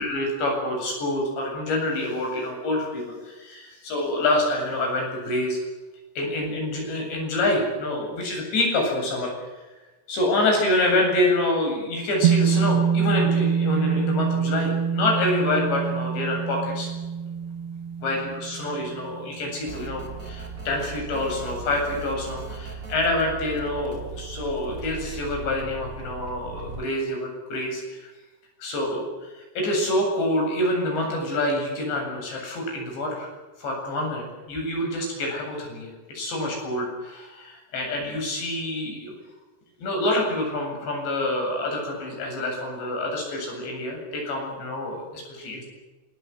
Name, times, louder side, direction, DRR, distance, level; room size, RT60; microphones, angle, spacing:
voice 1, 0.0-5.6 6.2-9.7 10.1-16.9 18.0-28.1 28.6-33.3 33.6-39.1 39.8-45.6, left 1 dB, 55° left, 1 dB, 10.0 m, -27 dB
sound 1, 12.2-20.7, right 7 dB, 65° right, 2.7 m, -25 dB
sound 2, 19.6-26.8, right 4 dB, 20° right, 3.1 m, -38 dB
27.5 x 22.0 x 8.2 m, 1.2 s
omnidirectional pair, 5.9 m